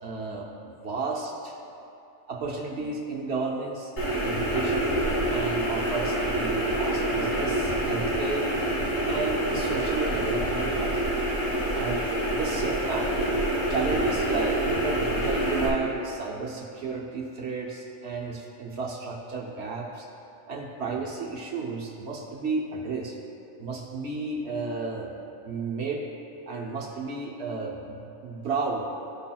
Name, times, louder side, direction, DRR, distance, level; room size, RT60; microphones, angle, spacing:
voice 1, 0.0-1.6 2.3-3.9 4.2-4.9 5.3-8.5 9.1-11.2 11.7-13.2 13.7-20.1 20.5-23.2 23.6-25.1 25.4-26.0 26.5-29.0, right 4 dB, 65° right, -1 dB, 1.0 m, -32 dB
sound 1, 4.0-15.7, right 1 dB, 70° left, 1.8 m, -27 dB
13.5 x 5.8 x 2.2 m, 2.7 s
omnidirectional pair, 1.2 m